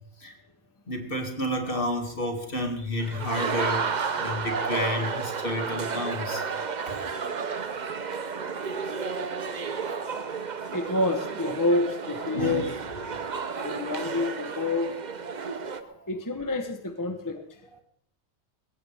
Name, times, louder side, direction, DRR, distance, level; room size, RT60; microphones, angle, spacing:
voice 1, 0.9-3.9 4.2-6.9 9.3-9.4 9.8-10.1 12.3-12.6 13.1-13.7 15.6-16.1, left 1 dB, 50° left, 3 dB, 2.5 m, -31 dB
sound 1, 3.0-15.8, right 5 dB, 45° right, 0.9 m, -32 dB
voice 2, 10.7-12.7 13.6-15.0 16.1-17.4, left 2 dB, 20° left, 7 dB, 1.1 m, -28 dB
20.5 x 16.5 x 3.5 m, 0.62 s
omnidirectional pair, 1.2 m